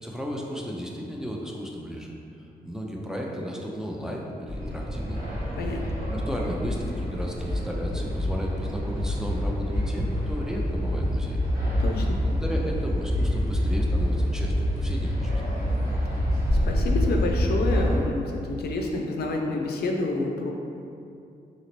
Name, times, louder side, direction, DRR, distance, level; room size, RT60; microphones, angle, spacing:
voice 1, 0.0-2.1 2.4-5.2 6.1-11.4 12.1-15.4, equal, 5° right, -2 dB, 0.4 m, -34 dB
sound 1, 4.5-18.0, equal, 75° right, 1.2 m, -26 dB
voice 2, 11.8-12.2 16.7-20.5, left 2 dB, 75° left, 1 dB, 0.4 m, -28 dB
2.9 x 2.8 x 2.9 m, 2.6 s
cardioid pair, 70°, 16 cm